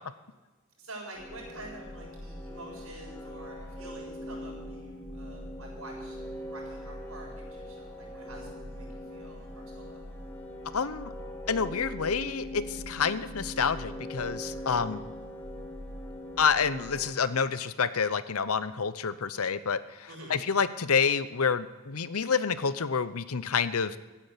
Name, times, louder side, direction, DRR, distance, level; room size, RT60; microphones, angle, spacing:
voice 1, 0.8-6.2 6.5-10.2 14.6-14.9 20.1-20.4, right 1 dB, 75° right, -3 dB, 7.2 m, -47 dB
sound 1, 1.1-17.1, equal, 10° left, 2.4 m, -41 dB
voice 2, 10.7-11.1 11.5-15.0 16.4-19.8 20.3-24.0, left 6 dB, 85° left, 15 dB, 0.8 m, -28 dB
16.0 x 9.9 x 8.2 m, 1.2 s
head